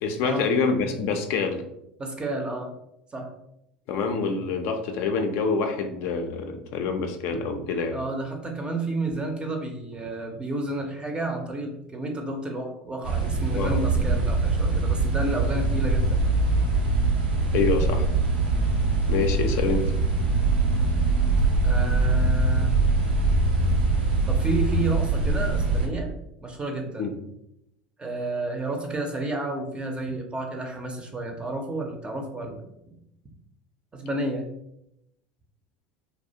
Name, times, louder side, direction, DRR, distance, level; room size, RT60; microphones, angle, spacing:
voice 1, 0.0-1.6 3.9-8.0 13.5-13.8 17.5-18.0 19.1-19.9 27.0-27.1, left 4 dB, 60° left, 5 dB, 0.4 m, -26 dB
voice 2, 2.0-2.7 3.1-3.3 7.9-16.3 21.6-22.8 24.3-26.1 26.4-27.1 28.0-33.0 33.9-34.5, right 2 dB, 20° right, 2 dB, 0.5 m, -31 dB
sound 1, 13.0-25.9, right 3 dB, 85° right, 0.4 m, -23 dB
2.3 x 2.0 x 2.7 m, 0.81 s
hypercardioid pair, 75°, 5 cm